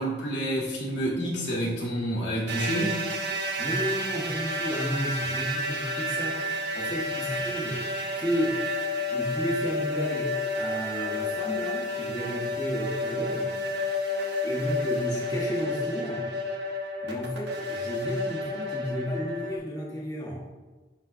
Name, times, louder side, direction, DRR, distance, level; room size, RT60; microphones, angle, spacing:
voice 1, 0.0-3.0, right 1 dB, 75° left, -5 dB, 1.7 m, -28 dB
sound 1, 2.5-19.6, left 1 dB, 65° right, 0.9 m, -31 dB
voice 2, 3.6-7.8 8.2-8.6 9.1-13.9 14.4-16.3 17.0-20.4, equal, 20° left, -6 dB, 1.1 m, -32 dB
9.5 x 3.9 x 2.5 m, 1.2 s
head